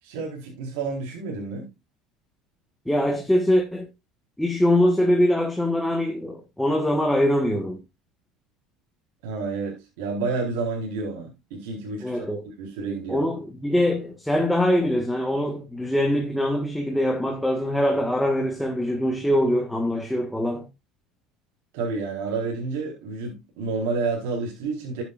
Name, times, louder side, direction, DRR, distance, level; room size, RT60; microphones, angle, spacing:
voice 1, 0.0-1.7 9.2-12.3 12.6-13.2 21.7-25.0, right 4 dB, 90° right, 4.4 m, -30 dB
voice 2, 2.8-3.9 4.4-7.8 12.0-12.5 13.1-20.7, left 1 dB, 5° left, 1.6 m, -23 dB
13.0 x 9.3 x 2.5 m
cardioid pair, 140°, 0 cm